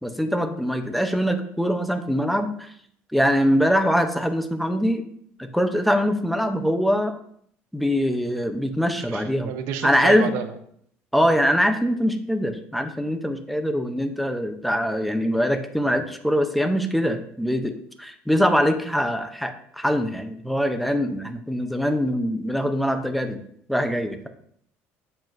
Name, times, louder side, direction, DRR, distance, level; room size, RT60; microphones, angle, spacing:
voice 1, 0.0-2.7 3.1-5.0 5.4-7.1 7.7-9.5 9.8-10.3 11.1-23.4 23.7-24.3, equal, ahead, 6 dB, 0.6 m, -23 dB
voice 2, 8.9-10.5, right 8 dB, 80° right, 8 dB, 0.8 m, -30 dB
7.7 x 7.2 x 2.6 m, 0.66 s
cardioid pair, 140°, 5 cm